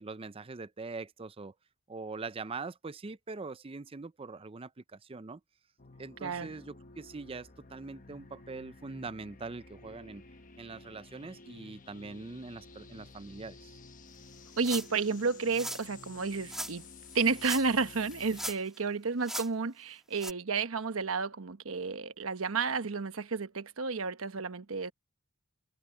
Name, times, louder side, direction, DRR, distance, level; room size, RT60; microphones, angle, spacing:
voice 1, 0.0-1.5 1.9-5.4 6.0-10.2 10.6-13.8, right 3 dB, 25° right, 0.5 m, -43 dB
sound 1, 5.8-18.5, left 3 dB, 40° left, 1.1 m, -52 dB
voice 2, 6.2-6.5 14.6-16.8 17.1-24.9, right 4 dB, 85° right, 1.1 m, -31 dB
sound 2, 14.6-15.0 15.5-15.9 16.5-16.7 17.3-17.8 18.1-18.8 19.2-19.5 20.2-20.3, right 1 dB, ahead, 1.4 m, -38 dB
head